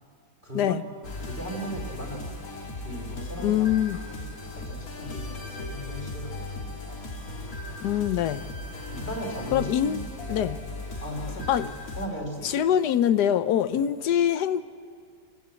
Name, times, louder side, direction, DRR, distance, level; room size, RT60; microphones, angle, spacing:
voice 1, 0.4-0.8 1.2-3.7 3.9-7.0 8.9-10.4 11.0-11.7 12.0-12.6 13.7-13.8, equal, 30° left, 3.6 m, -38 dB
sound 1, 1.0-12.1, left 2 dB, 55° left, 2.3 m, -37 dB
voice 2, 3.4-4.0 7.8-8.4 9.5-10.6 11.5-11.7 12.4-14.6, left 10 dB, 75° left, 1.3 m, -24 dB
27.5 x 15.5 x 8.3 m
omnidirectional pair, 1.8 m